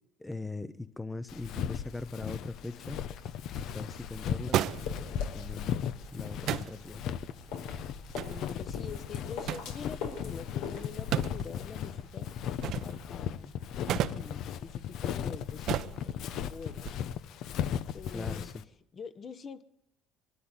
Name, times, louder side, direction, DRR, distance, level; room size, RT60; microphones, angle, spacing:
voice 1, 0.2-3.0 3.6-5.0 5.3-7.0 18.1-18.5, left 2 dB, 10° left, 0.8 m, -41 dB
Walk footsteps, 1.3-18.6, left 9 dB, 65° left, 0.9 m, -37 dB
sound 1, 2.8-16.9, right 11 dB, 60° right, 0.9 m, -38 dB
sound 2, 4.7-11.4, left 5 dB, 90° left, 4.7 m, -43 dB
voice 2, 8.3-17.0 17.3-17.5 17.9-18.5 18.9-19.6, left 5 dB, 35° left, 1.2 m, -45 dB
23.5 x 12.5 x 9.8 m
cardioid pair, 115°, 0 cm